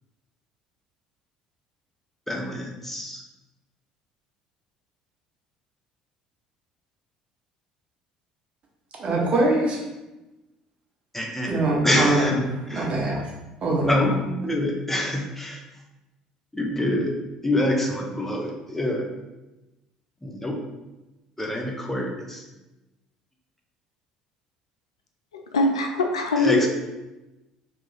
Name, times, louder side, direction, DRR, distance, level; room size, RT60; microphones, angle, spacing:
voice 1, 2.3-3.2 11.1-11.5 11.8-12.4 12.7-12.9 13.8-15.6 16.5-17.1 17.4-19.1 20.2-20.6 21.4-22.4 26.4-26.7, left 1 dB, 10° left, 1 dB, 0.7 m, -26 dB
voice 2, 9.0-9.8 11.5-12.4 12.7-13.2 13.6-14.0, right 2 dB, 40° right, -1 dB, 0.9 m, -23 dB
voice 3, 25.3-26.7, left 2 dB, 80° left, 3 dB, 0.3 m, -22 dB
3.1 x 2.4 x 4.0 m, 1.0 s
figure-of-eight pair, 60°, 3 cm